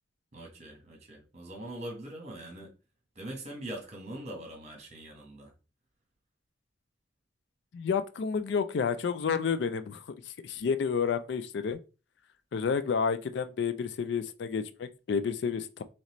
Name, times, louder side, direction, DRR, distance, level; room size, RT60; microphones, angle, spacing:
voice 1, 0.3-2.7 3.1-5.5, right 1 dB, 35° right, 1.2 m, -42 dB
voice 2, 7.7-10.0 10.4-11.8 12.5-15.8, left 6 dB, 60° left, 0.3 m, -30 dB
4.0 x 3.1 x 3.0 m
head